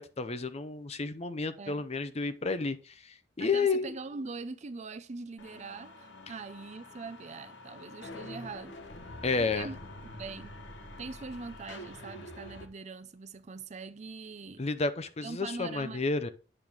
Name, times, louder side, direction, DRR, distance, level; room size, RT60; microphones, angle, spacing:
voice 1, 0.0-3.9 9.2-9.7 14.6-16.3, left 4 dB, 35° left, 0.6 m, -31 dB
voice 2, 3.4-8.8 9.4-9.8 10.0-10.5 11.0-14.7 15.2-16.0, right 4 dB, 40° right, 0.5 m, -42 dB
sound 1, 5.4-12.6, left 1 dB, 80° left, 1.3 m, -46 dB
8.9 x 3.6 x 6.2 m
head